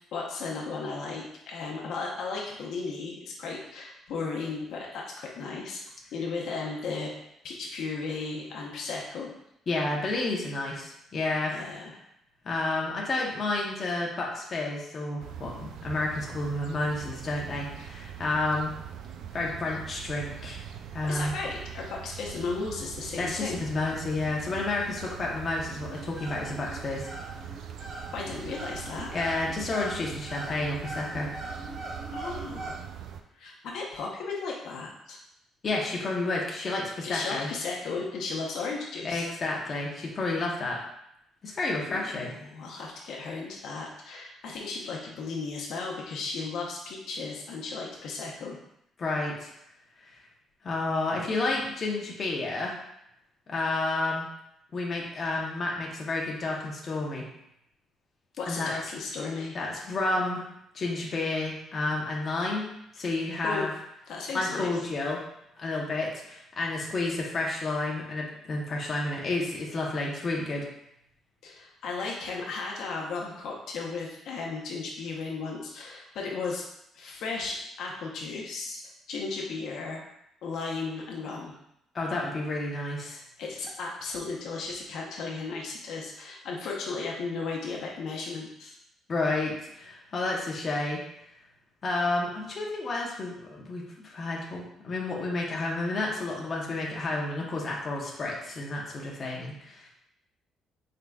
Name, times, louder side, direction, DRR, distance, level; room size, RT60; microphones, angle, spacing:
voice 1, 0.1-5.8 6.1-7.1 7.4-9.3 11.5-11.9 21.0-23.7 28.1-29.1 32.1-32.8 33.4-35.2 37.0-39.3 41.9-48.6 58.4-59.6 63.4-63.7 64.1-64.7 71.4-76.7 76.9-78.8 79.1-80.0 80.4-81.5 83.4-88.8, left 4 dB, 70° left, -2 dB, 0.8 m, -35 dB
voice 2, 9.7-11.5 12.4-18.7 19.3-20.6 20.9-21.3 23.2-27.1 29.1-31.3 35.6-37.5 39.0-40.8 41.4-42.3 49.0-49.5 50.0-50.2 50.6-52.8 53.5-54.3 54.7-57.2 58.5-58.7 59.5-60.4 60.7-62.7 62.9-63.7 64.3-65.2 65.6-70.7 81.9-83.2 89.1-91.0 91.8-99.9, left 2 dB, 35° left, -3 dB, 0.8 m, -30 dB
sound 1, 15.2-33.2, right 9 dB, 70° right, 0.3 m, -42 dB
sound 2, 23.3-32.7, right 1 dB, 25° right, 0.8 m, -42 dB
4.7 x 3.8 x 2.3 m, 0.79 s
cardioid pair, 135°, 0 cm